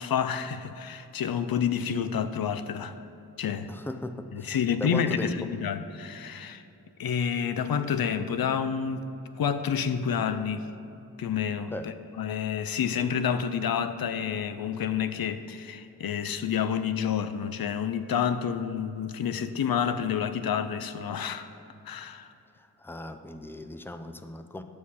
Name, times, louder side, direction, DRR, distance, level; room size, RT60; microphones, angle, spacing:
voice 1, 0.0-3.0 3.4-3.7 4.3-6.6 7.0-9.1 9.4-10.7 11.2-21.5 21.8-22.3, left 7 dB, 75° left, 11 dB, 0.5 m, -29 dB
voice 2, 3.7-5.5 11.7-12.0 22.6-24.6, left 1 dB, 5° left, 8 dB, 0.4 m, -38 dB
9.4 x 6.5 x 4.2 m, 2.8 s
wide cardioid pair, 100°, 36 cm